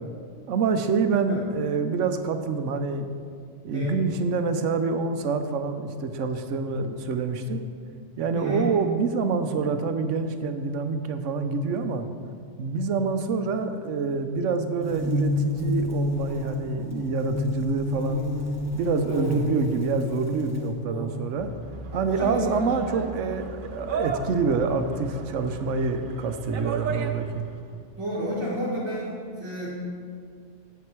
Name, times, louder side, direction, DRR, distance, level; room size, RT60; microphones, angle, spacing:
voice 1, 0.5-3.1 3.6-7.6 8.2-12.1 12.6-18.2 18.7-21.5 21.9-27.5, right 4 dB, 80° right, 8 dB, 1.0 m, -26 dB
voice 2, 8.3-8.7 19.1-19.4 20.9-21.2 21.9-22.8 28.0-29.7, equal, 25° right, -6 dB, 1.5 m, -30 dB
sound 1, 14.8-20.7, left 2 dB, 15° left, 1.3 m, -29 dB
sound 2, 21.2-27.6, right 5 dB, 55° right, 0.7 m, -36 dB
Piano, 21.4-27.0, left 2 dB, 40° left, 0.8 m, -43 dB
9.4 x 8.2 x 4.5 m, 2.2 s
omnidirectional pair, 1.3 m